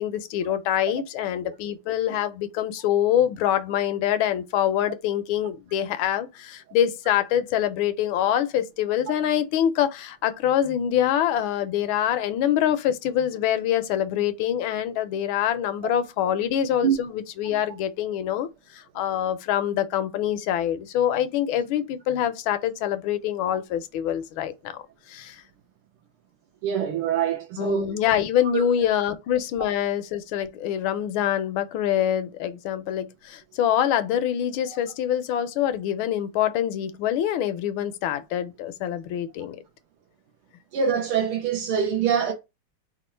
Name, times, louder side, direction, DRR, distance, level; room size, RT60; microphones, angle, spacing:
voice 1, 0.0-24.8 25.1-25.4 27.6-39.6, left 10 dB, 75° left, 1.3 m, -25 dB
voice 2, 26.6-27.9 28.5-28.6 40.7-42.3, right 8 dB, 80° right, 1.7 m, -24 dB
4.3 x 2.4 x 4.2 m
omnidirectional pair, 2.3 m